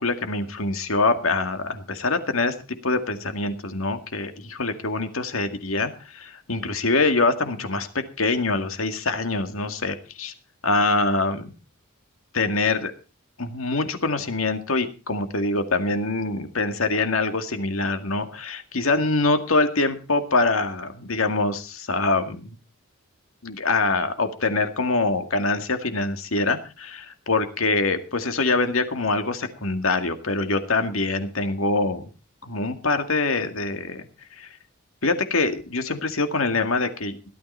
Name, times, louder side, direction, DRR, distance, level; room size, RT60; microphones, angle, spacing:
voice 1, 0.0-2.5 2.8-10.3 10.6-11.5 12.3-12.9 13.4-22.6 23.4-32.1 32.4-34.1 34.3-34.5 35.0-37.2, left 3 dB, 75° left, 7 dB, 2.1 m, -24 dB
17.5 x 12.5 x 4.3 m, 0.33 s
head